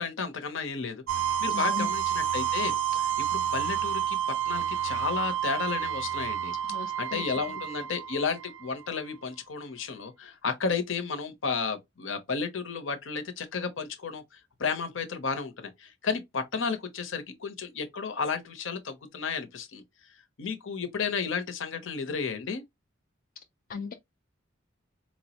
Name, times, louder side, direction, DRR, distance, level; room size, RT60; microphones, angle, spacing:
voice 1, 0.0-4.2 4.5-19.8 20.4-22.6, left 5 dB, 70° left, 0.7 m, -33 dB
sound 1, 1.1-8.9, right 9 dB, 80° right, 0.5 m, -30 dB
voice 2, 1.5-1.9 6.7-7.2 23.7-23.9, left 5 dB, 45° left, 0.3 m, -36 dB
4.3 x 2.0 x 2.8 m
head